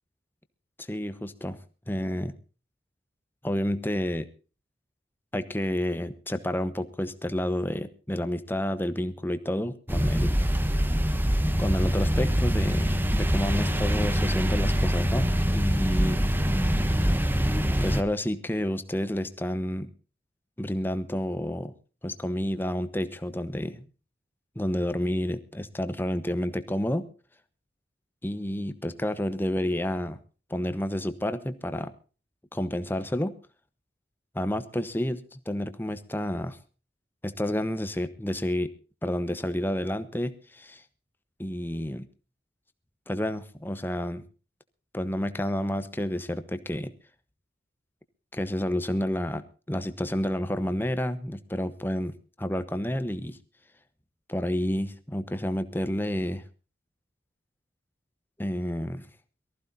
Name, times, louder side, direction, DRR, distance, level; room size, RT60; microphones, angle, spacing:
voice 1, 0.8-1.6 1.9-2.3 3.4-4.3 5.3-10.6 11.6-16.2 16.8-16.9 17.8-19.9 20.6-21.7 22.0-23.8 24.5-27.1 28.2-30.2 30.5-31.9 32.5-33.3 34.3-36.6 37.2-38.7 39.0-40.8 41.4-42.0 43.1-44.2 44.9-46.9 48.3-53.4 54.3-56.4 58.4-59.1, left 1 dB, 10° left, 11 dB, 1.0 m, -30 dB
sound 1, 9.9-18.0, equal, 10° right, 0.9 m, -24 dB
23.0 x 14.5 x 2.7 m, 0.36 s
head